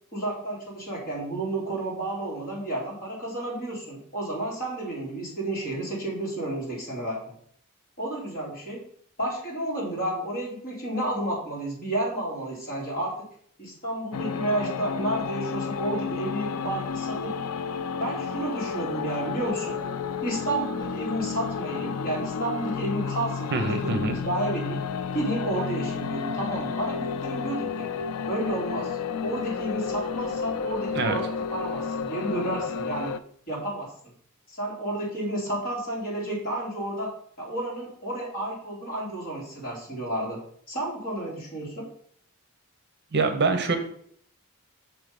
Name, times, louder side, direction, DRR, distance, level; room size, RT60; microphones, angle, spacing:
voice 1, 0.1-7.2 8.0-8.8 9.2-13.1 13.6-17.3 18.0-19.8 20.2-24.8 25.1-27.9 28.3-33.1 33.5-33.9 34.5-37.1 37.4-40.4 40.7-41.9, right 1 dB, 40° left, -4 dB, 2.8 m, -31 dB
sound 1, 14.1-33.2, left 6 dB, 90° left, 0.4 m, -31 dB
voice 2, 23.5-24.2 30.9-31.2 43.1-43.8, right 3 dB, 50° right, 7 dB, 0.8 m, -24 dB
6.0 x 4.7 x 5.2 m, 0.63 s
head